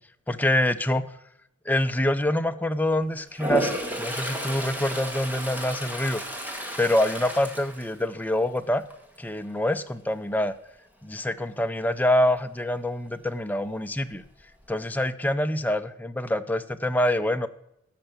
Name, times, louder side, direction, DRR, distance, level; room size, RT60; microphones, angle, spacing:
voice 1, 0.3-1.0 1.7-6.2 6.8-8.8 9.2-10.5 11.0-14.2 14.7-17.5, left 1 dB, 10° left, 9 dB, 0.5 m, -25 dB
Toilet flush, 3.3-8.5 8.9-9.3 13.7-13.8 14.1-14.8, equal, 10° right, 1.4 m, -32 dB
13.5 x 5.5 x 6.8 m, 0.81 s
head